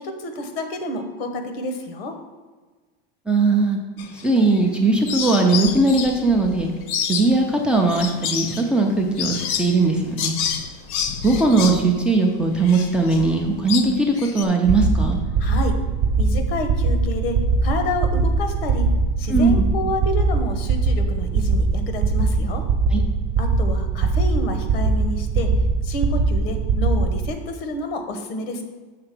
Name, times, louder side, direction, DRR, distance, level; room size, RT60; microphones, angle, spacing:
voice 1, 0.0-2.2 15.4-15.8 16.2-18.9 19.2-22.7 23.4-25.5 25.8-28.6, left 2 dB, 85° left, 6 dB, 1.2 m, -29 dB
voice 2, 3.3-3.8 4.1-6.7 7.1-10.3 11.2-15.2 19.3-19.7 22.9-23.0, right 3 dB, 5° right, 0 dB, 0.4 m, -19 dB
sound 1, 4.0-4.7 5.1-14.4, left 7 dB, 50° left, 0.7 m, -29 dB
sound 2, 14.6-27.3, right 4 dB, 40° right, 0.9 m, -21 dB
6.7 x 3.8 x 5.9 m, 1.3 s
supercardioid pair, 160°, 29 cm